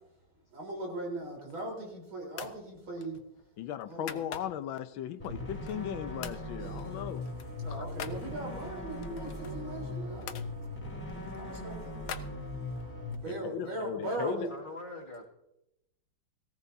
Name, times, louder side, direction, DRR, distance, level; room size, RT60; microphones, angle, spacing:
voice 1, 0.5-3.2 3.9-4.4 6.6-7.0 7.6-10.4 11.3-12.0 13.1-14.5, right 2 dB, 80° right, 4.7 m, -39 dB
sound 1, 1.3-1.9 2.3-2.6 3.0-4.8 5.2-5.9 6.2-6.5 6.8-8.2 9.0-10.5 11.1-12.9, left 8 dB, 65° left, 1.2 m, -45 dB
voice 2, 3.6-7.2 7.7-7.8 13.3-14.5, left 10 dB, 85° left, 1.5 m, -37 dB
sound 2, 5.2-13.1, left 1 dB, 5° left, 3.4 m, -39 dB
voice 3, 9.1-10.3 13.3-15.2, left 1 dB, 25° left, 2.3 m, -46 dB
18.0 x 16.0 x 2.7 m
omnidirectional pair, 2.1 m